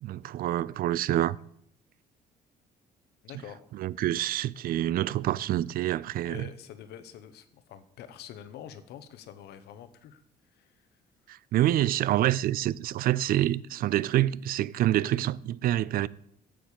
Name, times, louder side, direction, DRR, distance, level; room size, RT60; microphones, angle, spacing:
voice 1, 0.0-1.4 3.8-6.4 11.3-16.1, right 13 dB, 60° right, 0.4 m, -27 dB
voice 2, 3.2-3.6 6.2-10.2 10.5-10.9, left 10 dB, 80° left, 1.0 m, -46 dB
8.4 x 6.3 x 7.1 m
cardioid pair, 110°, 17 cm